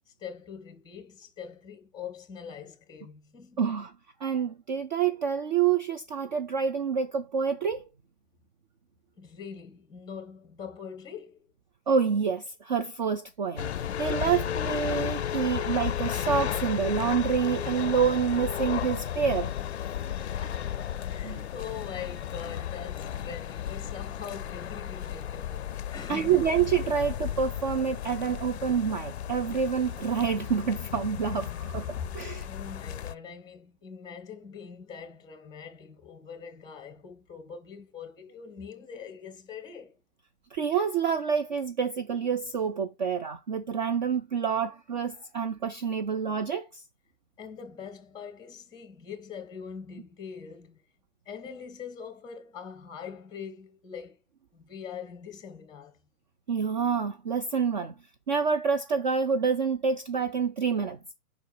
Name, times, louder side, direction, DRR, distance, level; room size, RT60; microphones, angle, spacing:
voice 1, 0.1-3.6 9.2-11.5 20.2-26.4 32.4-40.0 47.4-50.8 51.2-54.2 54.5-56.0, left 7 dB, 10° left, 1.3 m, -43 dB
voice 2, 3.6-3.9 4.2-7.8 11.9-19.5 21.2-21.4 26.1-32.5 40.5-46.8 56.5-57.9 58.3-61.0, right 6 dB, 35° right, 0.5 m, -27 dB
sound 1, 13.6-33.1, left 10 dB, 50° left, 0.5 m, -34 dB
5.1 x 4.5 x 4.3 m
figure-of-eight pair, 130°, 44 cm